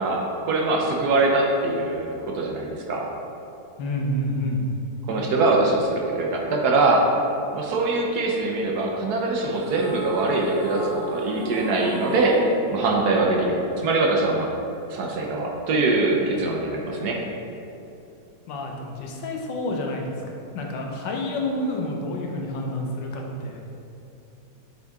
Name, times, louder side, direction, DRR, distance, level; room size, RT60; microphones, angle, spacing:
voice 1, 0.0-3.1 5.1-7.1 7.5-12.4 12.7-14.5 14.9-17.2, right 2 dB, 65° right, -1 dB, 1.2 m, -23 dB
voice 2, 3.8-4.6 18.5-23.6, left 1 dB, 85° left, 0 dB, 1.5 m, -29 dB
sound 1, 9.5-14.0, right 2 dB, 50° right, 0.9 m, -34 dB
7.9 x 4.1 x 3.6 m, 2.7 s
omnidirectional pair, 2.0 m